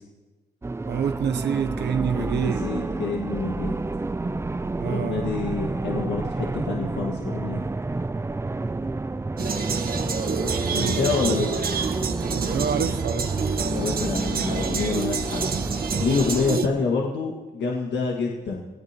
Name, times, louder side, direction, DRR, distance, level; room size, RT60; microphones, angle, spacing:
sound 1, 0.6-16.6, right 3 dB, 15° right, 0.4 m, -30 dB
voice 1, 0.9-2.7 4.8-5.3 10.7-11.0 11.3-11.5 12.2-13.4, right 7 dB, 70° right, 0.7 m, -27 dB
voice 2, 2.1-3.8 4.2-4.3 4.8-7.7 10.7-11.7 13.7-15.5 16.0-18.6, left 4 dB, 85° left, 1.9 m, -27 dB
sound 2, 9.4-16.7, right 5 dB, 55° right, 1.5 m, -28 dB
27.0 x 17.5 x 3.0 m
cardioid pair, 70°, 18 cm